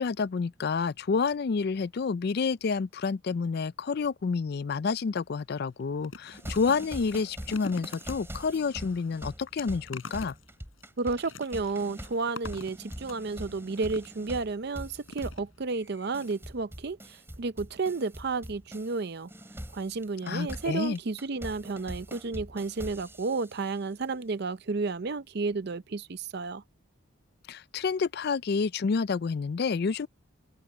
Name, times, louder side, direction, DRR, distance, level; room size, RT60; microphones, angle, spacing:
voice 1, 0.0-10.3 20.3-21.0 27.5-30.1, left 5 dB, 50° left, 0.4 m, -29 dB
sound 1, 5.0-5.2 5.6-14.4 15.1-15.9 16.2-16.3 16.6-16.7, left 3 dB, 70° left, 7.1 m, -46 dB
sound 2, 6.3-19.0 19.3-23.7, equal, 10° right, 3.1 m, -43 dB
voice 2, 11.0-19.3 19.7-26.6, right 3 dB, 50° right, 0.5 m, -32 dB
open air
head